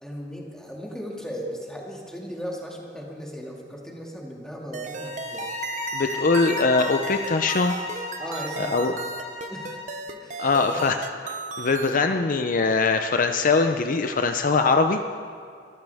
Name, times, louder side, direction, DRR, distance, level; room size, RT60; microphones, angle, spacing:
voice 1, 0.0-5.5 8.2-8.9 9.5-9.8 10.1-10.8, equal, 5° left, -3 dB, 2.2 m, -37 dB
sound 1, 4.7-12.0, right 4 dB, 45° right, 0.7 m, -36 dB
sound 2, 4.9-10.1, left 3 dB, 35° left, 2.3 m, -34 dB
voice 2, 5.9-7.8 8.6-8.9 10.4-11.0 11.2-15.0, left 4 dB, 50° left, 7 dB, 0.5 m, -22 dB
23.0 x 13.5 x 3.5 m, 2.3 s
head